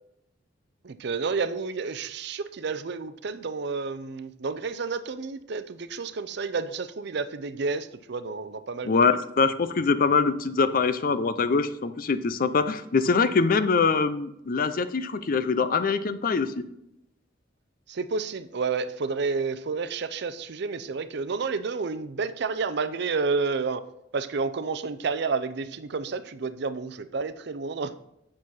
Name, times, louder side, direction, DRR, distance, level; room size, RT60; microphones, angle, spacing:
voice 1, 0.8-9.0 17.9-23.8 24.1-27.9, right 4 dB, 60° right, 13 dB, 0.5 m, -30 dB
voice 2, 8.8-16.6, left 4 dB, 50° left, 11 dB, 0.5 m, -23 dB
8.6 x 6.3 x 4.1 m, 0.80 s
head